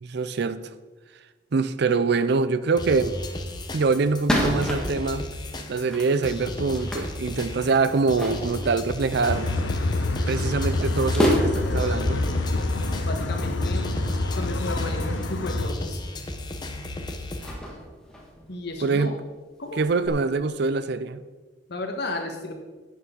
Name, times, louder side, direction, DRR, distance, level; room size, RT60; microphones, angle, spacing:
voice 1, 0.0-0.7 1.5-3.2 3.7-5.3 5.7-9.5 10.2-12.2 18.8-19.2 19.7-21.2, right 4 dB, 60° right, 0.5 m, -24 dB
sound 1, 2.8-17.5, left 1 dB, 25° left, 0.9 m, -35 dB
sound 2, 3.9-5.3 5.8-9.5 9.9-10.1 10.5-10.6 11.1-11.9 12.3-14.5 15.1-15.2 15.9-16.1 16.4-16.9 17.4-18.9 19.2-19.3 19.6-20.1, equal, 5° left, 1.7 m, -30 dB
sound 3, 9.3-15.7, left 2 dB, 80° left, 0.8 m, -26 dB
voice 2, 13.0-16.0 18.5-19.2 19.6-19.8 21.7-22.5, left 2 dB, 60° left, 1.5 m, -33 dB
11.0 x 8.5 x 3.9 m
head